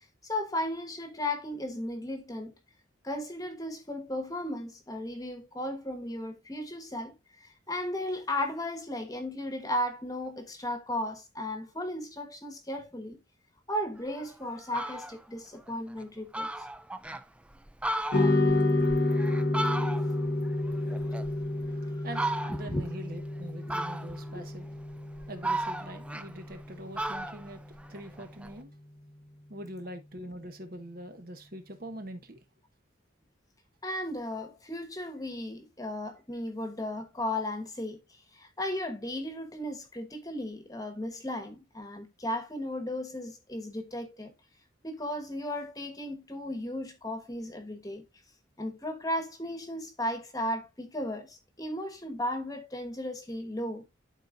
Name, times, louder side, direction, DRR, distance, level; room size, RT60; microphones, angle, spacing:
voice 1, 0.2-2.5 3.0-13.2 13.7-16.5 21.9-22.0 22.6-22.9 23.7-23.8 24.3-24.4 33.8-44.3 44.8-48.1 48.6-53.9, left 1 dB, 20° left, 1.2 m, -35 dB
Fowl, 14.1-14.2 14.6-15.2 15.7-15.8 16.0-16.1 16.3-17.2 17.7-20.3 20.6-21.7 22.1-22.8 23.7-24.3 24.9-26.7 27.0-28.5, right 1 dB, 5° right, 0.3 m, -35 dB
sound 1, 18.1-26.6, left 2 dB, 50° left, 1.0 m, -29 dB
voice 2, 22.0-24.7 25.3-27.6 27.9-28.7 29.5-32.4, right 1 dB, 45° right, 1.0 m, -43 dB
12.5 x 4.2 x 2.5 m
head